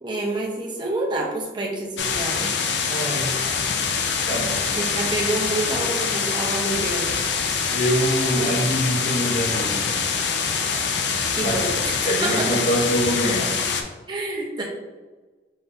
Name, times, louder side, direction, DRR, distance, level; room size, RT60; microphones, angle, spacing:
voice 1, 0.0-2.5 4.7-7.2 11.4-11.7 12.1-12.5 14.1-14.6, right 2 dB, 25° right, -2 dB, 0.8 m, -28 dB
sound 1, 2.0-13.8, left 5 dB, 65° left, 0.5 m, -24 dB
voice 2, 2.9-3.3 3.6-3.8 4.3-4.7 7.7-9.9 11.4-11.6 12.0-13.5, equal, 45° left, -1 dB, 0.9 m, -24 dB
5.5 x 2.6 x 3.4 m, 1.3 s
head